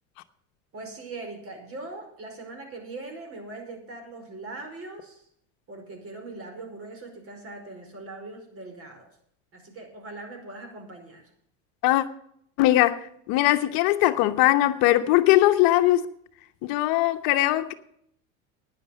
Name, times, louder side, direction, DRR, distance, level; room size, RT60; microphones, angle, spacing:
voice 1, 0.7-5.2 5.7-9.1 9.5-11.2, right 2 dB, 35° right, 5.1 m, -41 dB
voice 2, 12.6-16.1 16.6-17.7, left 15 dB, 60° left, 1.1 m, -20 dB
11.0 x 10.0 x 6.6 m
supercardioid pair, 110°, 39 cm